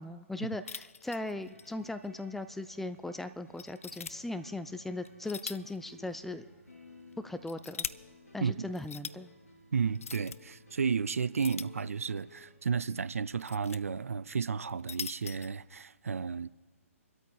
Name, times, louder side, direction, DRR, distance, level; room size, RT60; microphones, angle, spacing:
voice 1, 0.0-6.4 7.2-7.9 8.3-9.3, left 2 dB, 5° left, 0.3 m, -38 dB
sound 1, 0.7-1.7 2.0-2.1 2.7-2.8 3.6-4.1 5.0-5.8 6.1-6.2 7.1-7.9 8.7-9.2 9.9-10.4 11.4-12.2 13.1-13.8 14.6-15.5, left 6 dB, 65° left, 0.4 m, -42 dB
sound 2, 1.3-12.6, left 2 dB, 85° left, 2.8 m, -57 dB
voice 2, 9.7-16.5, right 6 dB, 70° right, 0.4 m, -32 dB
27.5 x 13.0 x 2.3 m
figure-of-eight pair, 130°, 8 cm